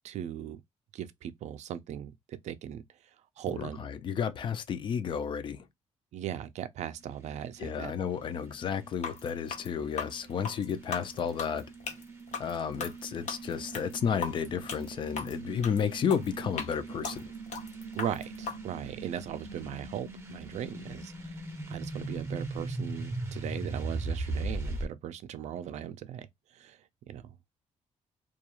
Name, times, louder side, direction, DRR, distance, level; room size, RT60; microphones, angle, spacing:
voice 1, 0.0-0.6 0.9-2.8 3.4-3.8 6.1-7.9 17.9-21.4 21.7-26.3 26.5-26.8 27.1-27.3, right 10 dB, 70° right, 0.4 m, -38 dB
voice 2, 3.6-5.6 7.6-11.6 12.4-17.3, left 7 dB, 40° left, 0.4 m, -32 dB
sound 1, 7.0-24.9, right 2 dB, 20° right, 0.5 m, -40 dB
sound 2, 8.9-18.6, left 5 dB, 80° left, 0.7 m, -39 dB
2.3 x 2.3 x 2.8 m
wide cardioid pair, 170°, 12 cm